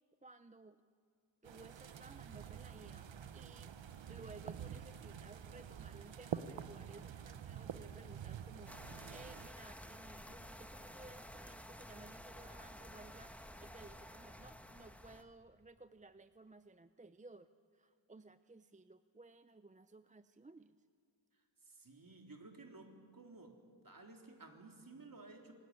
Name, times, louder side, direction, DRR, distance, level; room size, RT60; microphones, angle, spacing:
voice 1, 0.2-0.8 1.4-3.7 4.1-20.8, right 3 dB, 15° right, 11 dB, 0.7 m, -58 dB
sound 1, 1.4-9.5, right 8 dB, 75° right, 1.1 m, -47 dB
sound 2, 8.7-15.2, equal, 5° left, 1.6 m, -52 dB
voice 2, 21.6-23.6 23.8-25.5, right 3 dB, 50° right, 2 dB, 3.7 m, -55 dB
26.0 x 19.5 x 9.8 m, 2.2 s
cardioid pair, 70°, 45 cm